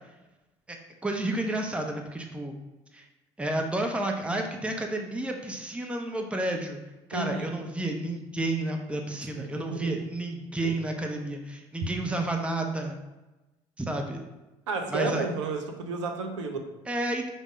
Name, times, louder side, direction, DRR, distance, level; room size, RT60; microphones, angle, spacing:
voice 1, 0.7-2.6 2.9-3.0 3.4-6.8 7.1-13.0 13.8-14.2 14.9-15.2 16.9-17.3, right 1 dB, 5° right, 2 dB, 0.7 m, -31 dB
voice 2, 7.1-7.5 9.1-9.9 10.6-10.7 14.7-16.7, right 4 dB, 85° right, 5 dB, 0.5 m, -32 dB
5.1 x 2.1 x 4.8 m, 1.1 s
hypercardioid pair, 60°, 15 cm